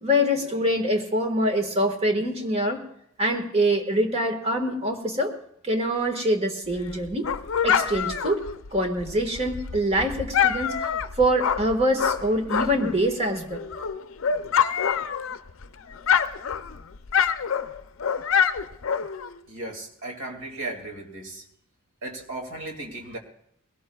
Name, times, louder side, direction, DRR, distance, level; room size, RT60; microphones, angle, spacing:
voice 1, 0.0-2.8 3.2-5.3 5.6-7.3 7.6-8.4 8.7-10.9 11.2-13.6, equal, 30° right, 4 dB, 1.5 m, -24 dB
Dog, 6.7-13.0 13.4-15.6 15.9-19.4, left 7 dB, 70° left, 0.5 m, -26 dB
voice 2, 19.5-21.5 22.0-23.2, right 2 dB, 75° right, 1 dB, 2.3 m, -36 dB
21.5 x 17.5 x 2.3 m, 0.71 s
head